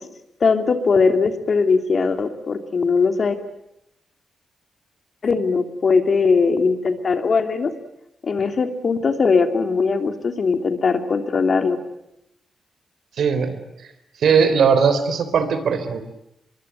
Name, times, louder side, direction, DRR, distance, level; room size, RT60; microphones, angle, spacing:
voice 1, 0.4-3.4 5.2-7.7 8.2-11.8, left 4 dB, 55° left, 7 dB, 3.0 m, -20 dB
voice 2, 13.2-13.6 14.2-16.0, right 6 dB, 80° right, 10 dB, 3.9 m, -18 dB
25.0 x 23.0 x 9.1 m, 0.83 s
cardioid pair, 80°, 0 cm